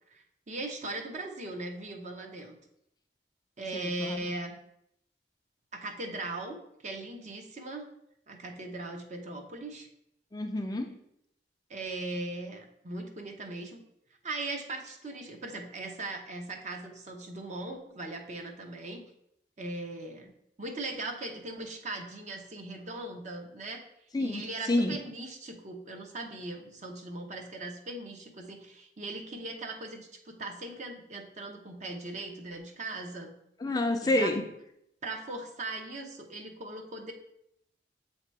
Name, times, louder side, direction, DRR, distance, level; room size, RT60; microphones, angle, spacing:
voice 1, 0.1-2.6 3.6-4.6 5.7-6.6 6.8-7.8 8.3-9.9 11.7-13.8 14.2-19.0 19.6-20.3 20.6-23.8 24.2-33.3 34.0-34.3 35.0-37.1, right 2 dB, 40° right, 4 dB, 0.8 m, -39 dB
voice 2, 3.7-4.2 10.3-11.0 24.1-25.0 33.6-34.5, left 1 dB, 20° left, 5 dB, 0.4 m, -29 dB
7.5 x 2.9 x 4.6 m, 0.77 s
head